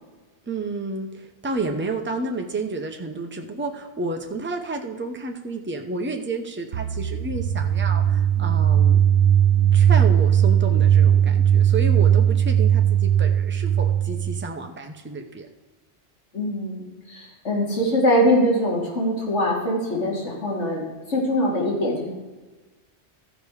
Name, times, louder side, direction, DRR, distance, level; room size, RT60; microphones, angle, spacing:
voice 1, 0.5-9.1 9.7-15.5, right 3 dB, 10° right, 3 dB, 0.7 m, -31 dB
sound 1, 6.7-14.5, right 9 dB, 85° right, 1.0 m, -18 dB
voice 2, 16.3-22.1, equal, 85° left, -3 dB, 2.5 m, -23 dB
14.0 x 5.1 x 4.8 m, 1.2 s
omnidirectional pair, 1.1 m